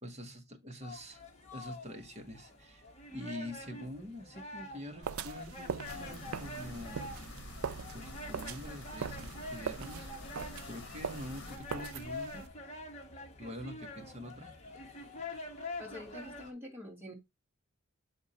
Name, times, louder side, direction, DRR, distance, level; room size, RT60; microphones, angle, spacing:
voice 1, 0.0-1.2 1.5-2.8 3.1-7.2 7.9-12.5 13.4-14.5, left 1 dB, 30° right, 1.3 m, -46 dB
sound 1, 0.8-16.5, left 2 dB, 30° left, 1.4 m, -46 dB
sound 2, 5.0-12.5, right 6 dB, 85° right, 0.5 m, -42 dB
sound 3, 5.8-11.6, left 2 dB, 55° left, 1.4 m, -48 dB
voice 2, 15.8-17.1, left 1 dB, 10° right, 2.6 m, -46 dB
7.8 x 3.6 x 4.2 m
head